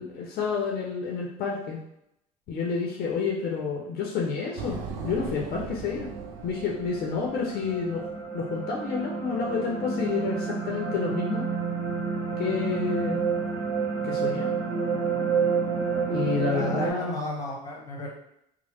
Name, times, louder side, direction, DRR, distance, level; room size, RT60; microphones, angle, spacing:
voice 1, 0.0-1.8 2.5-4.8 5.0-6.1 6.4-8.0 8.3-11.5 12.4-13.2 14.0-14.5 16.1-17.2, left 5 dB, 60° left, 0 dB, 0.6 m, -29 dB
sound 1, 4.6-8.3, right 4 dB, 85° right, 0.5 m, -39 dB
sound 2, 5.3-16.9, right 5 dB, 65° right, 1.0 m, -30 dB
voice 2, 16.5-18.1, left 1 dB, 20° left, -2 dB, 1.0 m, -34 dB
3.0 x 2.1 x 3.1 m, 0.78 s
supercardioid pair, 85°, 17 cm